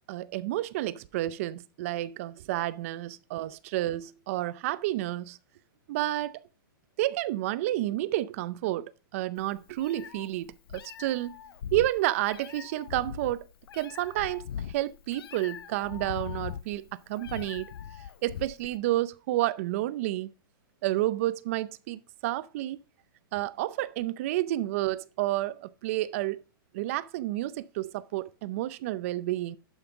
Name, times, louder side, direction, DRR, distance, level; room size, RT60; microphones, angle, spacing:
voice 1, 0.1-5.4 5.9-6.4 7.0-11.4 11.7-13.4 13.7-14.4 14.7-17.7 18.2-20.3 20.8-22.8 23.3-26.4 26.7-29.6, right 15 dB, 40° right, 0.5 m, -30 dB
Meow, 9.4-18.8, left 9 dB, 85° left, 0.5 m, -41 dB
11.5 x 5.5 x 3.6 m
hypercardioid pair, 160°, 12 cm